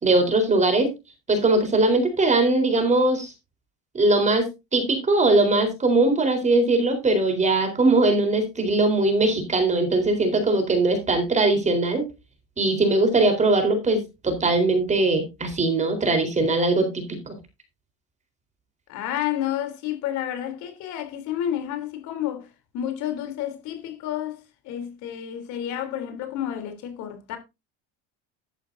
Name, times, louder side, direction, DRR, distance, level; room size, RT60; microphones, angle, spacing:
voice 1, 0.0-0.9 1.3-3.3 3.9-12.1 12.6-17.3, right 2 dB, 20° right, 4.0 m, -21 dB
voice 2, 18.9-22.5 22.7-24.4 24.7-27.4, left 11 dB, 65° left, 3.4 m, -30 dB
12.0 x 11.0 x 2.7 m
cardioid pair, 130°, 31 cm